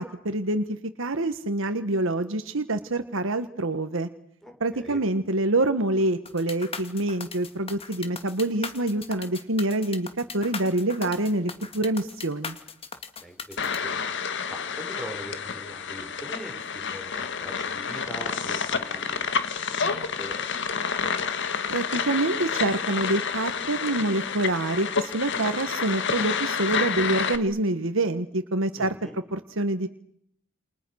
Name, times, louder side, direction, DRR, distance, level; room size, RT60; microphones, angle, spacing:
voice 1, 0.0-4.1 4.6-12.5 21.7-28.9 29.3-29.9, right 2 dB, 70° right, 9 dB, 1.5 m, -26 dB
voice 2, 4.4-5.0 13.2-14.0 14.5-21.1 28.8-29.2, equal, ahead, 4 dB, 5.5 m, -42 dB
sound 1, 6.3-13.8, left 5 dB, 30° left, 2.2 m, -38 dB
sound 2, 13.6-27.4, left 6 dB, 60° left, 1.9 m, -29 dB
29.5 x 29.0 x 6.5 m, 0.72 s
head